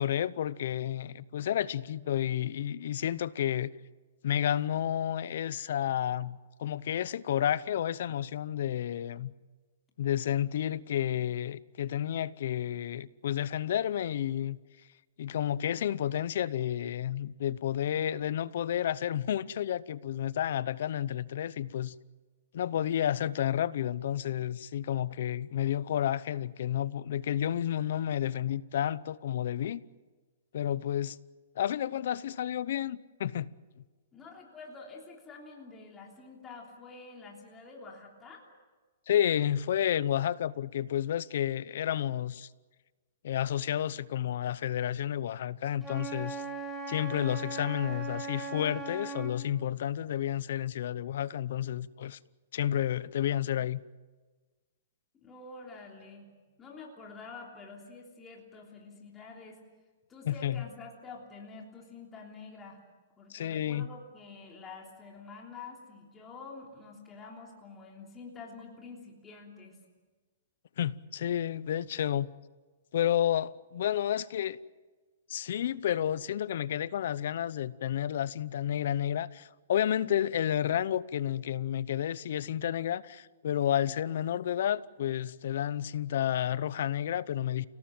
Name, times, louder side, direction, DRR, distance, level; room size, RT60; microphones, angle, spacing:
voice 1, 0.0-3.7 4.2-9.3 10.0-14.6 15.2-22.0 22.5-29.8 30.5-31.2 31.6-33.5 39.1-42.5 43.2-46.4 46.9-52.2 52.5-53.8 60.3-60.7 63.3-63.9 70.8-72.3 72.9-74.6 75.3-87.7, left 10 dB, 60° left, 0.8 m, -31 dB
voice 2, 34.1-38.5 55.2-56.3 56.6-59.6 60.1-62.8 63.2-69.8, left 4 dB, 15° left, 3.3 m, -48 dB
Wind instrument woodwind instrument, 45.8-49.4, right 3 dB, ahead, 4.3 m, -38 dB
29.5 x 18.0 x 7.7 m
hypercardioid pair, 160°, 0 cm